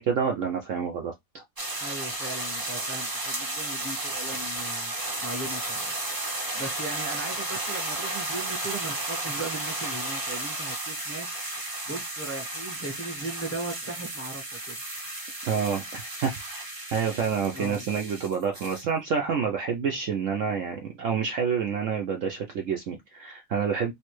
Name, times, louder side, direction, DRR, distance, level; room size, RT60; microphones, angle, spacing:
voice 1, 0.0-1.4 15.4-16.6 16.9-23.9, right 6 dB, 65° right, 0.8 m, -28 dB
sound 1, 1.6-18.8, right 2 dB, 30° right, 0.4 m, -33 dB
voice 2, 1.8-4.9 5.2-11.3 11.9-14.7 17.5-17.8, right 2 dB, 15° left, 0.6 m, -38 dB
3.2 x 2.7 x 3.0 m
omnidirectional pair, 1.8 m